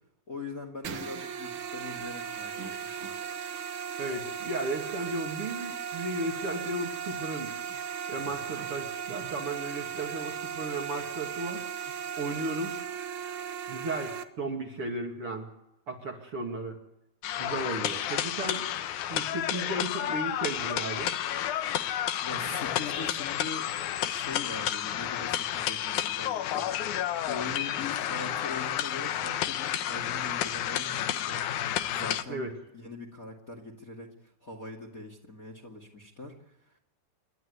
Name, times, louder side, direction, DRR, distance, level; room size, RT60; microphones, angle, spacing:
voice 1, 0.3-3.1 22.2-23.7 24.0-36.8, left 3 dB, 25° left, 3 dB, 2.3 m, -42 dB
sound 1, 0.8-14.2, right 8 dB, 70° right, 1.2 m, -37 dB
voice 2, 4.0-7.5 8.1-11.6 12.2-12.8 13.7-15.5 15.9-16.8 17.4-18.7 19.1-21.1 32.3-32.5, right 2 dB, 40° right, 2 dB, 3.0 m, -35 dB
sound 2, 17.2-32.2, left 11 dB, 70° left, 2.1 m, -31 dB
28.5 x 12.5 x 9.6 m, 0.84 s
omnidirectional pair, 4.2 m